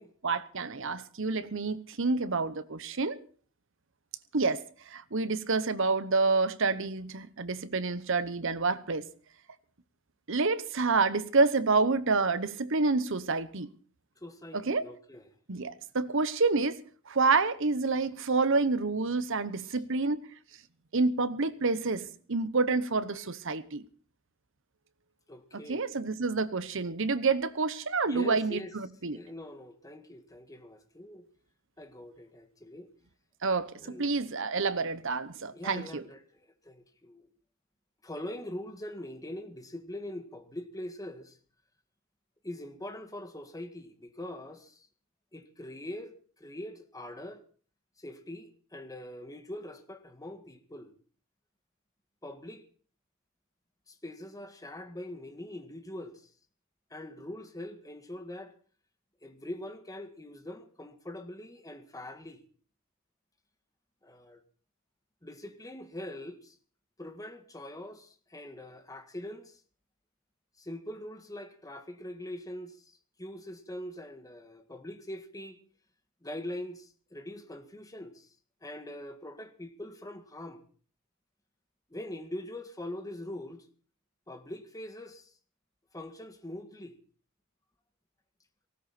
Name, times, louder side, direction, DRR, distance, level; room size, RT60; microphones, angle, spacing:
voice 1, 0.2-3.2 4.3-9.0 10.3-13.7 14.5-14.8 15.5-20.3 20.9-23.9 25.5-29.2 33.4-36.0, right 4 dB, 65° right, 1.0 m, -28 dB
voice 2, 14.2-15.3 19.6-19.8 25.3-26.0 28.0-28.7 29.0-31.3 31.8-32.9 33.8-34.1 35.5-37.3 38.0-41.4 42.4-44.9 45.3-47.4 48.0-50.9 52.2-52.6 53.9-56.3 56.9-58.5 59.2-62.4 64.0-64.4 65.2-66.6 67.0-69.6 70.6-75.6 76.2-78.4 78.6-80.6 81.9-83.7 84.3-85.3 85.9-87.0, left 1 dB, 15° left, 1.7 m, -43 dB
19.0 x 16.0 x 4.3 m
head